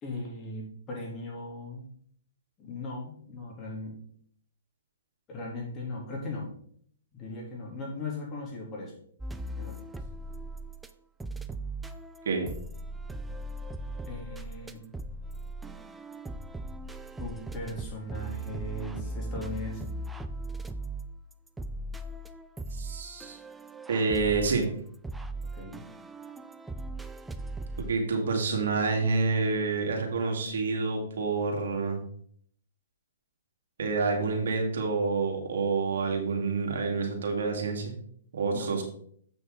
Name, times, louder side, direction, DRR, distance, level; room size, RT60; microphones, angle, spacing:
voice 1, 0.0-1.8 2.6-4.0 5.3-6.5 7.1-8.9 9.5-9.8 14.1-14.8 17.2-19.9 25.5-25.8 38.5-38.7, left 2 dB, 25° left, -2 dB, 3.2 m, -38 dB
sound 1, 9.2-10.9 11.2-27.9, right 2 dB, 5° right, 0.5 m, -39 dB
voice 2, 22.7-23.4 23.9-24.6 27.8-32.0 33.8-37.9 38.3-38.8, right 4 dB, 70° right, 2 dB, 2.2 m, -28 dB
7.8 x 6.0 x 4.0 m, 0.62 s
hypercardioid pair, 130°, 0 cm